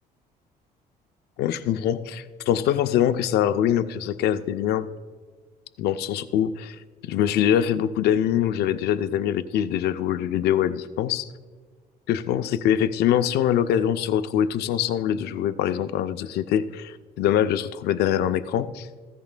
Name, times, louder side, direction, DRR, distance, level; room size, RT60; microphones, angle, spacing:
voice 1, 1.4-4.9 5.8-6.8 7.0-11.3 12.1-18.9, left 10 dB, 75° left, 10 dB, 0.5 m, -23 dB
15.5 x 13.5 x 2.2 m, 1.5 s
cardioid pair, 110°, 17 cm